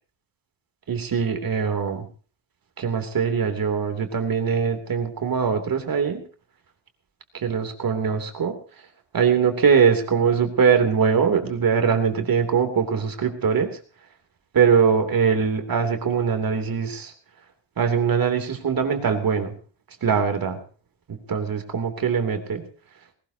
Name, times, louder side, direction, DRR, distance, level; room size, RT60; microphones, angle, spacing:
voice 1, 0.9-2.1 2.8-6.2 7.3-8.6 9.1-13.7 14.5-17.1 17.8-19.5 20.0-20.6 21.3-22.6, right 6 dB, 45° right, 6 dB, 3.1 m, -22 dB
20.0 x 18.5 x 2.9 m, 0.39 s
cardioid pair, 120°, 47 cm